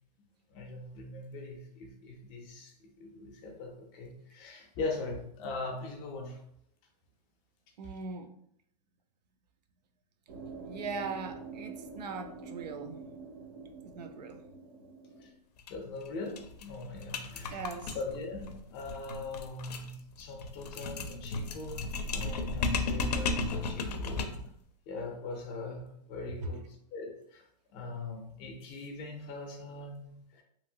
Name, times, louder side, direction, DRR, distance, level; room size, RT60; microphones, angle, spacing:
voice 1, 0.5-6.4 7.8-7.9 15.1-15.3 15.7-24.4 24.9-30.4, left 3 dB, 25° left, 2 dB, 0.5 m, -41 dB
voice 2, 7.8-8.3 10.7-13.0 13.8-14.4 17.5-18.0, right 5 dB, 85° right, 7 dB, 0.5 m, -40 dB
sound 1, 10.3-15.3, right 4 dB, 40° right, 0.5 m, -46 dB
sound 2, 15.6-15.7 16.0-16.1 16.4-24.5, left 3 dB, 75° left, 0.5 m, -35 dB
2.8 x 2.6 x 2.7 m, 0.70 s
hypercardioid pair, 160°, 20 cm